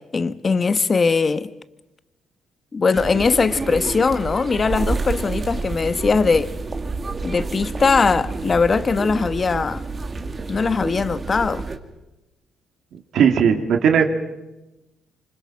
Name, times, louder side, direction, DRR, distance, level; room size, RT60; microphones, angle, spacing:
voice 1, 0.0-1.5 2.7-6.5 7.2-9.8 10.5-11.7, left 4 dB, 35° left, 1.2 m, -20 dB
sound 1, 2.9-11.8, right 3 dB, 30° right, 2.4 m, -29 dB
voice 2, 12.9-14.0, right 7 dB, 70° right, 2.8 m, -17 dB
27.0 x 25.5 x 5.9 m
cardioid pair, 90°, 0 cm